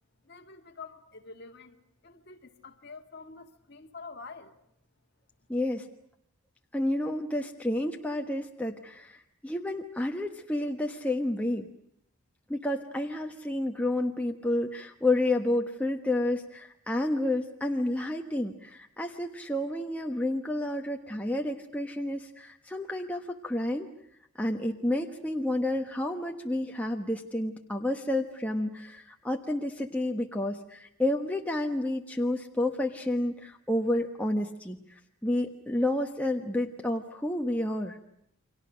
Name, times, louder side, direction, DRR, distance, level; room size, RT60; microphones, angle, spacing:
voice 1, 0.2-1.8 2.0-4.6, left 4 dB, 50° left, 5 dB, 2.0 m, -47 dB
voice 2, 5.5-5.9 6.7-11.7 12.5-23.9 24.4-38.0, left 1 dB, 5° left, 2 dB, 1.2 m, -30 dB
29.5 x 24.0 x 6.3 m, 0.75 s
head